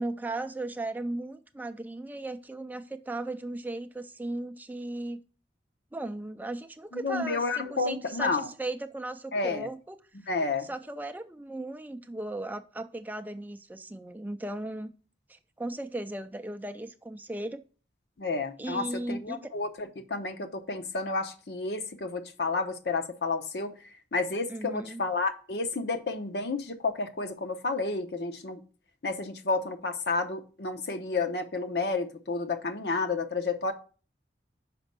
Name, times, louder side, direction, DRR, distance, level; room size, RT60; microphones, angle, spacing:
voice 1, 0.0-5.2 5.9-10.0 10.6-14.9 15.3-17.6 18.6-19.5 24.5-25.0, right 2 dB, 10° right, 0.4 m, -36 dB
voice 2, 6.9-8.5 9.3-9.7 10.3-10.7 18.2-23.7 24.1-28.6 29.0-33.7, left 3 dB, 70° left, 0.8 m, -31 dB
6.0 x 5.1 x 5.3 m
head